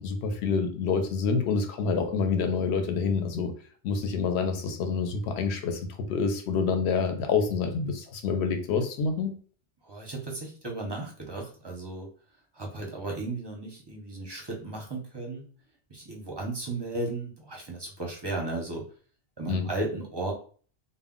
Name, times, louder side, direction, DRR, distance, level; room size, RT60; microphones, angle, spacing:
voice 1, 0.0-3.5 3.8-5.8 6.1-9.3 19.5-19.7, left 5 dB, 70° left, 6 dB, 0.8 m, -27 dB
voice 2, 9.8-12.1 12.5-15.4 15.9-18.8 19.4-20.3, right 2 dB, 30° right, -1 dB, 0.5 m, -35 dB
2.2 x 2.1 x 3.6 m, 0.42 s
omnidirectional pair, 1.2 m